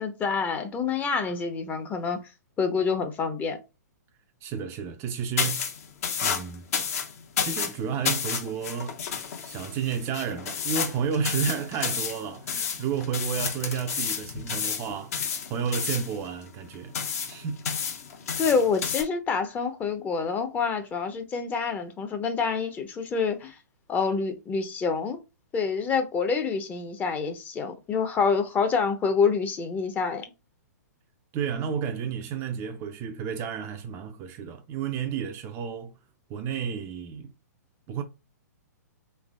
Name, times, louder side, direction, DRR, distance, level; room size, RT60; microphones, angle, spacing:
voice 1, 0.0-2.3 2.6-3.6 18.4-23.6 23.9-25.2 25.5-30.2, left 5 dB, 15° left, 0.7 m, -27 dB
voice 2, 4.4-5.7 6.2-6.7 7.4-9.0 9.5-15.2 15.5-17.0 17.3-17.6 31.3-35.9 36.3-37.3 37.9-38.0, right 7 dB, 25° right, 0.5 m, -31 dB
sound 1, 5.4-19.0, left 7 dB, 55° left, 0.9 m, -31 dB
3.5 x 3.3 x 2.2 m
figure-of-eight pair, 120°, 9 cm